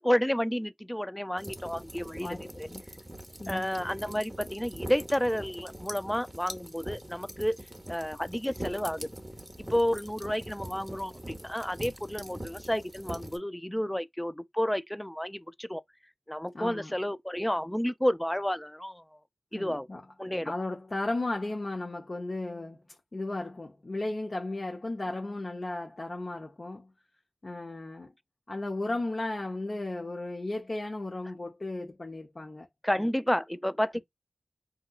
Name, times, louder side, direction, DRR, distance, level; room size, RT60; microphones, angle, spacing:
voice 1, 0.0-2.7 3.5-7.6 7.9-9.1 9.7-15.8 16.3-19.0 19.5-19.9 20.2-20.5 32.8-34.0, equal, 5° left, 0.3 m, -31 dB
sound 1, 1.4-13.4, right 1 dB, 15° right, 0.8 m, -43 dB
voice 2, 2.2-2.8 3.4-3.7 4.1-4.2 16.5-16.9 19.5-20.0 20.5-22.8 23.1-26.9 27.4-28.1 28.5-32.7 33.9-34.0, left 2 dB, 40° left, 0.7 m, -35 dB
3.6 x 2.8 x 2.3 m
wide cardioid pair, 90°, 0 cm